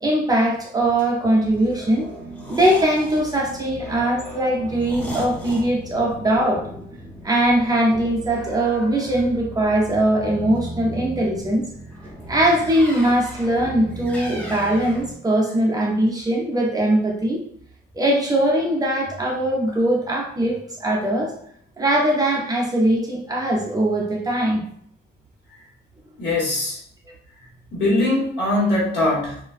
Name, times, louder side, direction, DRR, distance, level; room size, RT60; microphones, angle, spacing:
voice 1, 0.0-2.1 2.5-6.6 7.2-11.7 12.3-17.4 17.9-21.3 21.8-24.6, right 1 dB, 20° right, -2 dB, 0.5 m, -21 dB
sound 1, 0.8-15.2, right 1 dB, 10° left, 0.8 m, -37 dB
voice 2, 26.2-26.8 27.7-29.4, left 2 dB, 65° left, -5 dB, 1.2 m, -21 dB
2.4 x 2.1 x 2.4 m, 0.64 s
cardioid pair, 130°, 19 cm